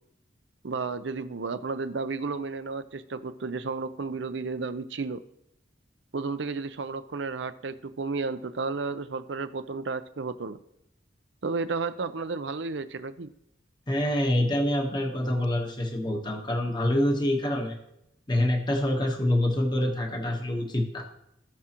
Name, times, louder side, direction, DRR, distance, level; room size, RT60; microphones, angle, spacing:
voice 1, 0.6-5.2 6.1-10.6 11.4-13.3, right 4 dB, 75° right, 12 dB, 0.6 m, -32 dB
voice 2, 13.9-17.8 18.3-21.0, left 1 dB, 25° left, 2 dB, 1.2 m, -26 dB
17.5 x 6.3 x 3.0 m, 0.80 s
head